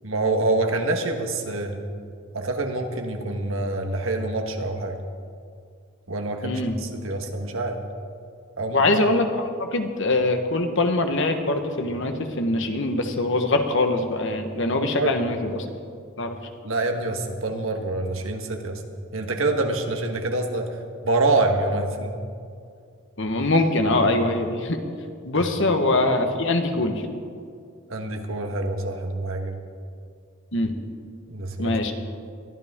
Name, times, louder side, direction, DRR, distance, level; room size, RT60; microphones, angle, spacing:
voice 1, 0.0-1.8 2.3-5.0 6.1-7.8 8.6-8.8 14.8-15.1 16.6-18.8 19.1-20.7 21.0-22.1 27.9-29.6 31.3-31.9, right 2 dB, 70° right, 4 dB, 1.5 m, -26 dB
voice 2, 6.4-6.8 8.7-15.6 16.2-16.4 23.2-24.8 25.2-27.1 30.5-30.8 31.6-31.9, left 2 dB, 60° left, 5 dB, 1.3 m, -23 dB
22.0 x 14.0 x 3.7 m, 2.3 s
head